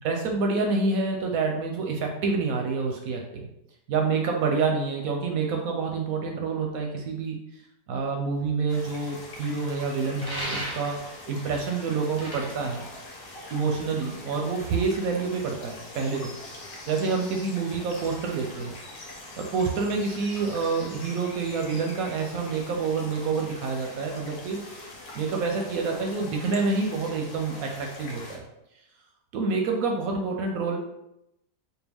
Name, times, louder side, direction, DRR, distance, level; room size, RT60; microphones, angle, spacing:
voice 1, 0.0-3.5 3.9-7.4 7.9-11.0 11.3-12.8 13.5-16.3 16.9-18.8 19.4-24.6 25.1-28.4 29.3-30.8, right 4 dB, 70° right, 2 dB, 0.9 m, -27 dB
sound 1, 8.7-28.4, left 2 dB, 75° left, 1.4 m, -43 dB
sound 2, 10.2-11.2 12.0-13.7, equal, 25° right, 0.5 m, -36 dB
4.5 x 2.2 x 3.4 m, 0.85 s
omnidirectional pair, 1.8 m